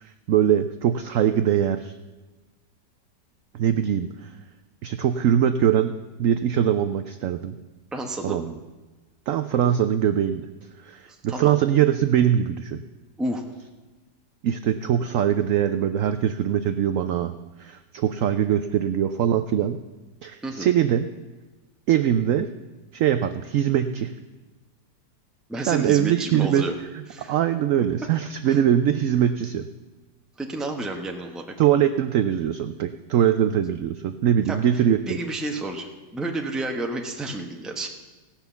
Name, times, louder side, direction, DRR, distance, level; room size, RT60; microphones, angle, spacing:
voice 1, 0.3-1.9 3.5-4.1 4.8-5.9 6.2-7.5 8.2-8.6 9.3-10.4 10.8-12.8 14.4-17.3 17.6-19.8 20.2-21.1 21.9-22.5 22.9-24.1 25.7-26.7 27.3-29.7 31.6-35.0, right 10 dB, 75° right, 10 dB, 0.7 m, -22 dB
voice 2, 7.9-8.5 11.1-11.6 13.2-13.4 20.4-20.7 25.5-26.8 27.1-27.4 28.4-28.6 30.4-31.4 34.5-37.9, right 1 dB, ahead, 3 dB, 0.7 m, -31 dB
17.5 x 5.8 x 7.0 m, 1.2 s
omnidirectional pair, 1.8 m